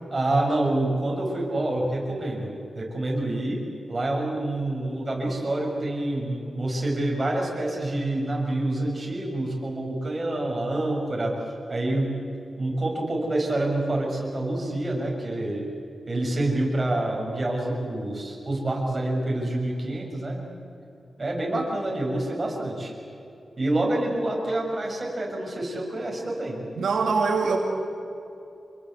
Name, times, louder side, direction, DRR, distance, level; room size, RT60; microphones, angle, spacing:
voice 1, 0.1-3.6 3.9-11.4 11.7-12.1 12.6-15.7 16.1-20.4 21.2-22.9 23.6-26.6, right 1 dB, 25° right, -1 dB, 7.0 m, -27 dB
voice 2, 26.8-27.6, right 4 dB, 80° right, 1 dB, 2.6 m, -23 dB
27.0 x 22.0 x 8.2 m, 2.7 s
wide cardioid pair, 120°, 0 cm